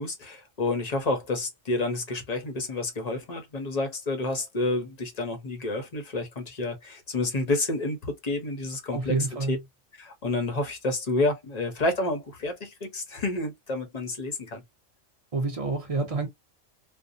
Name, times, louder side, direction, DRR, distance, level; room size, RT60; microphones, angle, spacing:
voice 1, 0.0-9.2 9.5-9.6 10.0-14.6, left 2 dB, 40° left, 0.6 m, -29 dB
voice 2, 8.9-9.6 15.3-16.3, right 3 dB, 35° right, 0.7 m, -28 dB
2.6 x 2.1 x 2.5 m
omnidirectional pair, 1.4 m